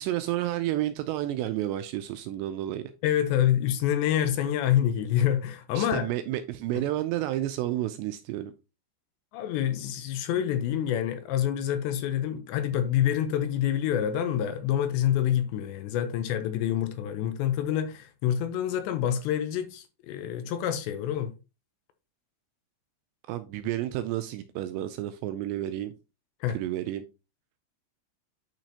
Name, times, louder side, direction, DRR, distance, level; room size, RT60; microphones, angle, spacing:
voice 1, 0.0-2.9 5.8-8.5 23.3-25.9 26.5-27.1, right 13 dB, 85° right, 2.5 m, -31 dB
voice 2, 3.0-6.1 9.3-21.3 26.4-26.6, left 10 dB, 80° left, 2.9 m, -27 dB
9.0 x 6.0 x 2.8 m
omnidirectional pair, 5.4 m